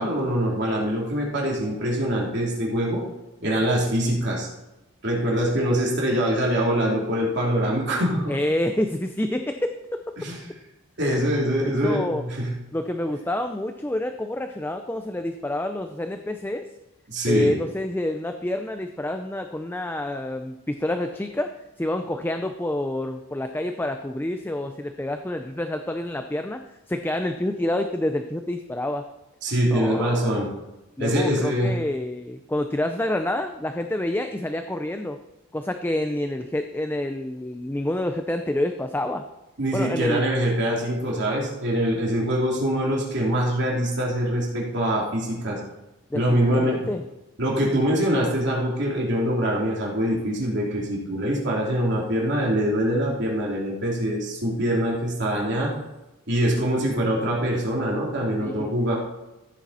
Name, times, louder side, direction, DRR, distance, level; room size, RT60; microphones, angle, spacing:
voice 1, 0.0-3.0 3.4-4.5 5.0-8.3 10.2-10.4 11.0-12.5 17.1-17.5 29.4-30.5 31.0-31.7 39.6-45.6 46.1-46.9 47.4-55.7 56.3-58.9, equal, 60° right, -3 dB, 3.1 m, -24 dB
voice 2, 8.3-10.3 11.7-12.3 12.7-16.7 17.3-21.5 21.8-26.6 26.9-29.1 29.7-30.5 31.0-35.2 35.5-39.2 39.7-40.2 46.1-47.0 58.4-58.7, left 1 dB, 10° left, 6 dB, 0.5 m, -28 dB
14.5 x 8.7 x 4.2 m, 1.0 s
head